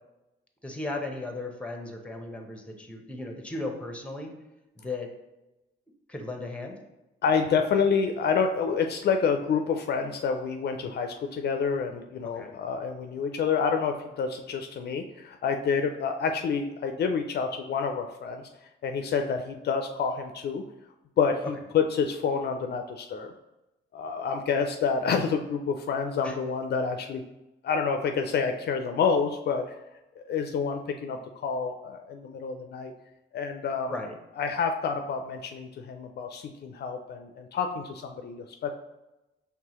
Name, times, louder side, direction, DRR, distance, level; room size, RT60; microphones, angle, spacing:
voice 1, 0.6-4.3 4.8-5.1 6.1-6.8 12.3-12.5 26.2-26.3 33.9-34.1, left 2 dB, 5° left, 3 dB, 0.8 m, -36 dB
voice 2, 7.2-18.5 18.8-20.6 21.2-23.3 23.9-27.2 27.6-29.7 30.2-32.9 33.3-33.9 34.4-38.7, left 5 dB, 55° left, 6 dB, 0.4 m, -28 dB
4.7 x 3.3 x 2.9 m, 0.97 s
cardioid pair, 90°, 20 cm